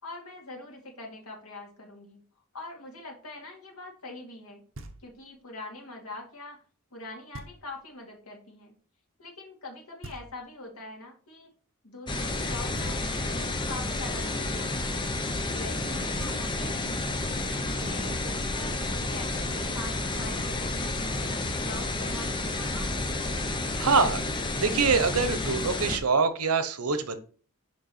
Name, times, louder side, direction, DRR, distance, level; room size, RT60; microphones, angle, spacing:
voice 1, 0.0-2.2 2.5-4.6 5.0-6.6 6.9-8.7 9.2-11.5 11.8-15.0 15.5-17.4 17.7-20.7 21.2-23.4, left 2 dB, 80° left, 1 dB, 2.4 m, -44 dB
Knock, 4.7-5.4 7.3-8.0 10.0-10.8 12.7-13.5 15.8-15.9 16.2-17.0, right 2 dB, 60° right, 0.9 m, -46 dB
sound 1, 12.1-26.0, left 2 dB, 20° left, 0.7 m, -30 dB
voice 2, 23.8-24.2 24.6-27.2, right 5 dB, 90° right, 11 dB, 0.9 m, -24 dB
6.5 x 5.3 x 4.2 m, 0.41 s
head